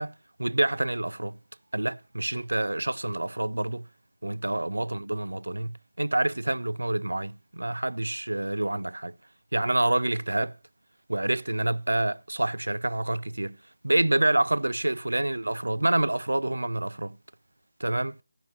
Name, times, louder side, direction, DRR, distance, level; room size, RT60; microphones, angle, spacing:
voice 1, 0.0-1.4 1.7-3.9 4.2-9.1 9.5-10.6 11.1-13.6 13.8-17.2 17.8-18.2, right 1 dB, 85° right, 0.5 m, -27 dB
15.5 x 5.6 x 7.2 m
figure-of-eight pair, 160°, 0 cm